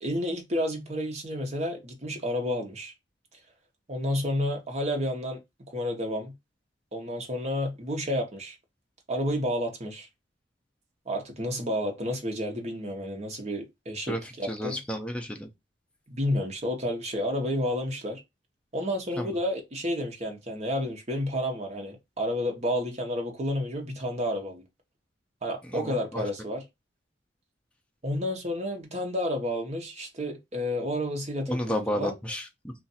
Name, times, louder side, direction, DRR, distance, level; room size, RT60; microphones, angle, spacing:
voice 1, 0.0-2.9 3.9-5.4 5.7-6.3 6.9-8.6 9.1-10.1 11.1-14.8 16.1-18.2 18.7-24.6 25.4-26.6 28.0-32.1, equal, 35° right, 0.9 m, -30 dB
voice 2, 14.1-15.5 19.2-19.4 25.6-26.2 31.5-32.7, equal, 5° left, 0.6 m, -32 dB
2.5 x 2.4 x 4.0 m
head